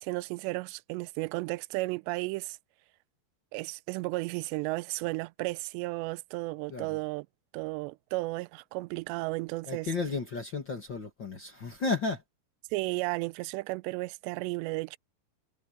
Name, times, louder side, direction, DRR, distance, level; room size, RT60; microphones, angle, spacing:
voice 1, 0.0-2.6 3.5-7.3 7.5-9.9 12.7-15.0, right 22 dB, 85° right, 2.7 m, -34 dB
voice 2, 9.7-12.2, left 4 dB, 45° left, 1.6 m, -33 dB
omnidirectional pair, 5.1 m